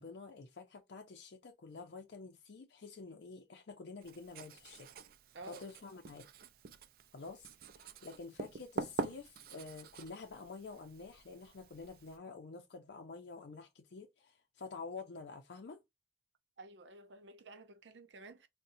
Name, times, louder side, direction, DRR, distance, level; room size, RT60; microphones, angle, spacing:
voice 1, 0.0-4.9 5.5-6.3 7.1-7.5 7.7-15.8, left 4 dB, 75° left, 0.5 m, -49 dB
Writing, 4.0-12.2, right 4 dB, 55° right, 0.3 m, -46 dB
voice 2, 5.3-5.7 16.6-18.5, right 2 dB, 90° right, 0.7 m, -52 dB
4.0 x 2.1 x 2.6 m
head